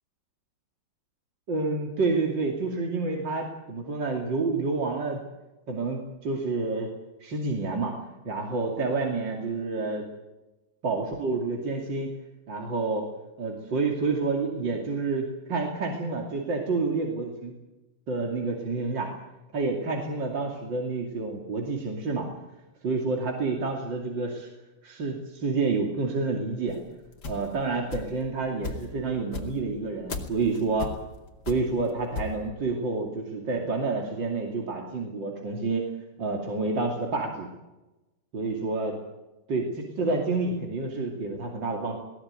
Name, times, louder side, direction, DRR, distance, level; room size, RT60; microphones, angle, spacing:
voice 1, 1.5-5.2 5.7-6.9 7.2-8.0 8.2-10.1 10.8-12.1 12.5-13.1 13.4-17.5 18.1-19.1 19.5-22.3 22.8-24.5 24.8-26.8 27.3-30.9 31.5-35.9 36.2-37.5 38.3-39.0 39.5-42.0, right 3 dB, 70° right, 1 dB, 3.4 m, -29 dB
sound 1, 26.7-28.3 28.6-32.4, left 3 dB, 55° left, 3.1 m, -36 dB
20.5 x 18.5 x 9.0 m, 1.0 s
omnidirectional pair, 2.1 m